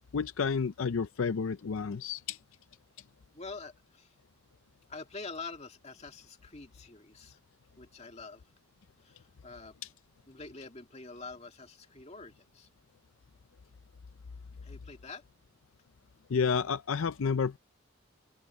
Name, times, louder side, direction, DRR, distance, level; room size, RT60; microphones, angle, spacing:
voice 1, 0.1-2.4 16.3-17.6, left 5 dB, 75° left, 0.5 m, -30 dB
voice 2, 3.3-4.1 4.9-7.4 7.8-8.4 9.0-9.8 10.3-12.7 14.6-15.2, left 3 dB, 30° left, 2.2 m, -46 dB
open air
head